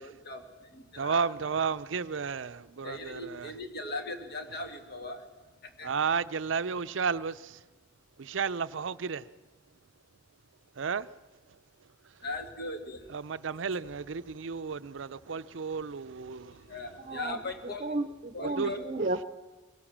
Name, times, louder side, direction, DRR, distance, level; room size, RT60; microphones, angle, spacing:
voice 1, 0.0-1.2 2.8-5.2 5.6-5.9 12.2-13.2 16.5-17.9 18.3-18.9, left 2 dB, 55° left, 2.3 m, -39 dB
voice 2, 1.0-3.5 5.8-7.6 8.2-9.2 10.8-11.1 13.1-16.7 18.4-18.7, right 5 dB, 75° right, 0.6 m, -32 dB
voice 3, 17.0-17.4 17.8-19.2, right 2 dB, 40° right, 0.8 m, -33 dB
22.5 x 18.0 x 7.4 m
head